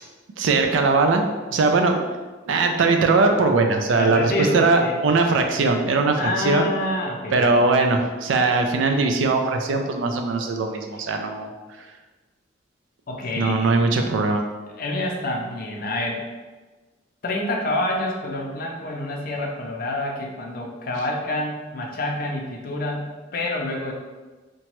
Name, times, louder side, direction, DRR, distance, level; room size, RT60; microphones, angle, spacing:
voice 1, 0.4-1.2 1.5-2.0 2.5-6.7 7.3-11.5 13.4-14.4, right 3 dB, 90° right, 4 dB, 0.4 m, -20 dB
voice 2, 4.0-5.0 6.2-7.6 13.1-13.8 14.8-16.3 17.2-23.9, left 1 dB, 50° left, 0 dB, 0.5 m, -27 dB
2.9 x 2.2 x 2.9 m, 1.3 s
head